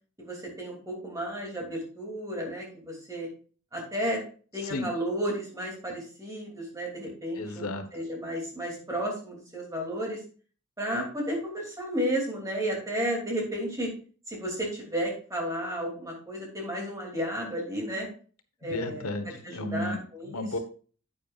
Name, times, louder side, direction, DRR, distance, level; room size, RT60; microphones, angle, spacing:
voice 1, 0.2-3.3 3.7-4.2 4.5-10.2 10.8-13.9 14.3-18.1 18.6-19.1 19.4-20.5, equal, 15° right, -1 dB, 2.8 m, -33 dB
voice 2, 7.4-7.9 18.7-20.6, left 1 dB, 85° left, 7 dB, 1.2 m, -33 dB
10.0 x 8.8 x 2.5 m, 0.40 s
head